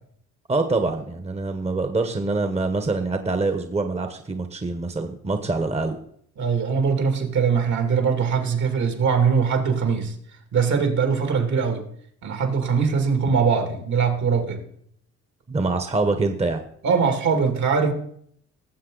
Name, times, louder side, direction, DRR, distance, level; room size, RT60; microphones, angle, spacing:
voice 1, 0.5-6.0 15.5-16.6, right 3 dB, 20° right, 7 dB, 1.0 m, -25 dB
voice 2, 6.4-10.1 10.5-11.8 12.2-14.6 16.8-17.9, right 6 dB, 70° right, 5 dB, 2.5 m, -21 dB
18.5 x 7.4 x 3.9 m, 0.66 s
cardioid pair, 90°, 30 cm